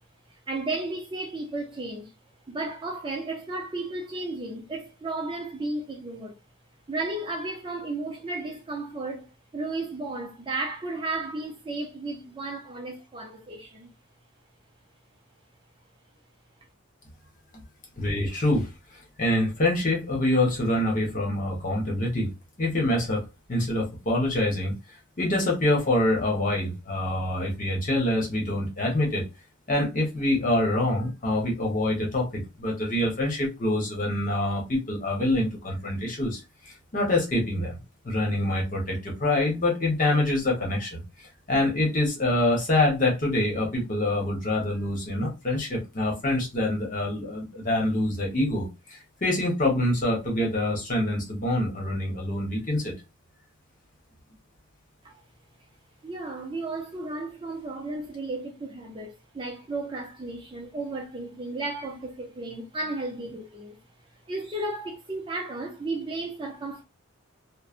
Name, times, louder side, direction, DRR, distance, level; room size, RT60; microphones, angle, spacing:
voice 1, 0.3-2.1 2.5-6.4 6.9-13.9 55.0-55.1 56.0-63.8 64.3-66.8, right 2 dB, 25° right, 0.5 m, -34 dB
voice 2, 18.0-18.7 19.2-22.3 22.6-23.2 23.5-24.7 25.2-29.2 29.7-37.8 38.0-41.0 41.5-52.9, left 1 dB, 40° left, 1.1 m, -25 dB
3.1 x 2.1 x 2.4 m
head